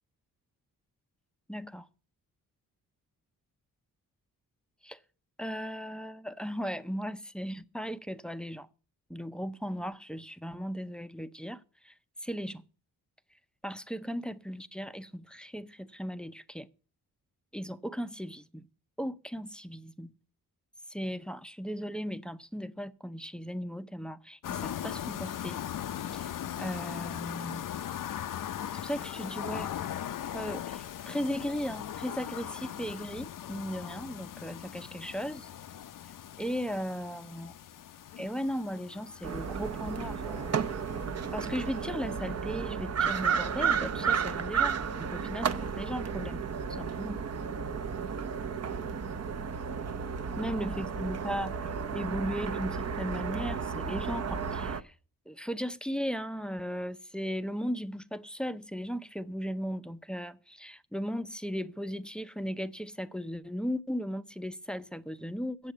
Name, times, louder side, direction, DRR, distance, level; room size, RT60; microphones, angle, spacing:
voice 1, 1.5-1.9 4.8-5.0 5.4-8.7 9.1-11.9 12.2-12.6 13.6-16.7 17.5-18.6 19.0-20.1 20.9-25.6 26.0-27.7 28.7-29.8 30.3-35.5 36.4-37.6 38.2-40.6 41.3-47.2 50.4-54.9 55.3-65.7, equal, ahead, 0.5 m, -37 dB
sound 1, 24.4-42.3, left 10 dB, 60° left, 0.6 m, -40 dB
sound 2, 39.2-54.8, right 6 dB, 45° right, 0.7 m, -33 dB
8.6 x 7.5 x 8.0 m
cardioid pair, 100°, 37 cm